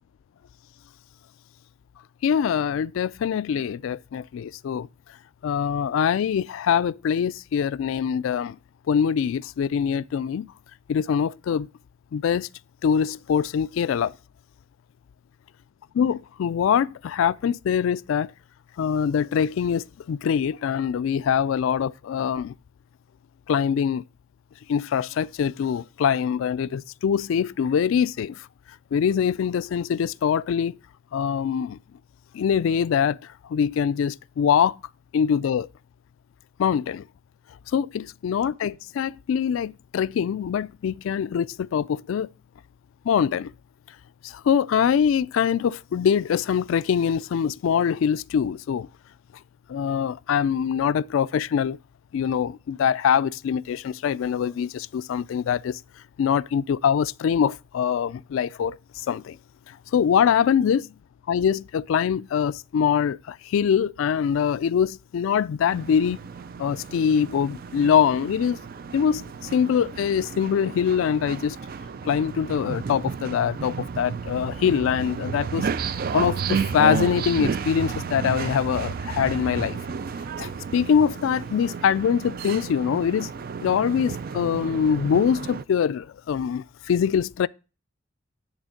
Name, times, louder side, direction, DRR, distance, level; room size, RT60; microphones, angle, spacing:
voice 1, 2.2-4.9 5.4-8.6 8.9-10.5 10.9-11.7 12.1-12.5 12.8-14.1 15.9-18.3 18.8-22.5 23.5-24.0 24.7-28.5 28.9-30.7 31.1-31.8 32.3-33.2 33.5-34.8 35.1-35.7 36.6-37.0 37.7-42.3 43.1-43.5 44.2-48.9 49.7-51.8 52.1-55.8 56.2-58.7 59.1-59.4 59.7-60.8 61.3-66.2 66.6-68.6 68.9-69.2 69.5-71.6 72.0-75.7 76.1-79.8 80.4-83.3 83.6-87.5, left 7 dB, 80° left, 0.3 m, -23 dB
sound 1, 65.7-85.6, right 6 dB, 45° right, 0.4 m, -32 dB
10.5 x 3.6 x 6.3 m
head